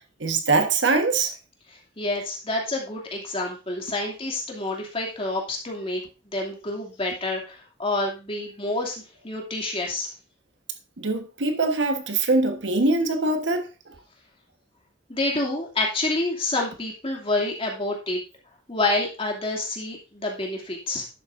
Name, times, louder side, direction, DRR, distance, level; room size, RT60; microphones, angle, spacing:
voice 1, 0.2-1.3 11.0-14.0, right 3 dB, 85° right, 1.3 m, -23 dB
voice 2, 2.0-6.0 6.3-10.1 15.1-18.2 18.7-21.1, left 2 dB, 30° left, 2.6 m, -28 dB
11.0 x 8.4 x 2.6 m
head